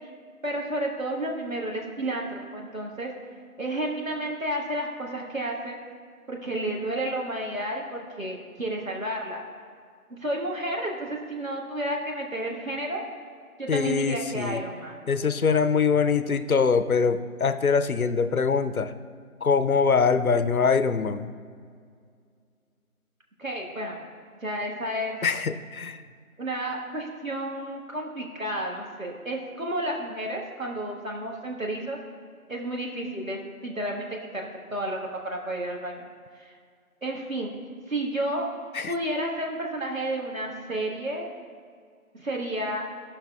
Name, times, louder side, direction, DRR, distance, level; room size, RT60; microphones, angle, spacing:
voice 1, 0.4-3.1 3.6-5.8 6.3-9.4 10.1-13.0 13.6-15.0 23.4-24.1 24.4-25.2 26.4-32.0 32.5-36.1 36.4-36.5 37.0-37.5 37.9-38.5 38.9-41.3 42.1-42.9, right 1 dB, 65° right, -1 dB, 1.5 m, -31 dB
voice 2, 13.7-14.6 15.1-18.9 19.4-21.3 25.2-26.0 38.7-38.9, left 5 dB, 70° left, 11 dB, 0.6 m, -23 dB
16.0 x 5.6 x 2.3 m, 2.1 s
figure-of-eight pair, 175°, 44 cm